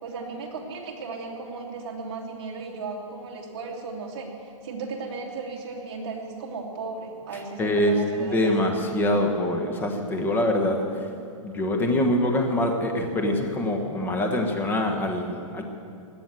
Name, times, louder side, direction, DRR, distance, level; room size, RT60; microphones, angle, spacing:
voice 1, 0.0-8.5, right 4 dB, 45° right, -1 dB, 2.9 m, -35 dB
voice 2, 7.6-11.1 11.4-15.6, left 1 dB, 10° left, 4 dB, 1.1 m, -24 dB
17.5 x 11.0 x 7.6 m, 2.5 s
hypercardioid pair, 170°, 18 cm